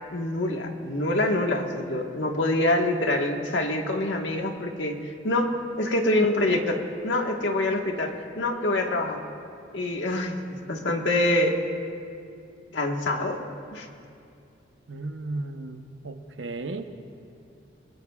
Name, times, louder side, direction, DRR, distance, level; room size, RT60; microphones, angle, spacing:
voice 1, 0.1-9.2 9.7-11.6 12.7-13.4 13.7-13.9, left 1 dB, 90° left, 2 dB, 1.5 m, -26 dB
voice 2, 14.9-16.9, right 2 dB, 90° right, 6 dB, 1.0 m, -35 dB
26.5 x 20.5 x 2.4 m, 2.5 s
head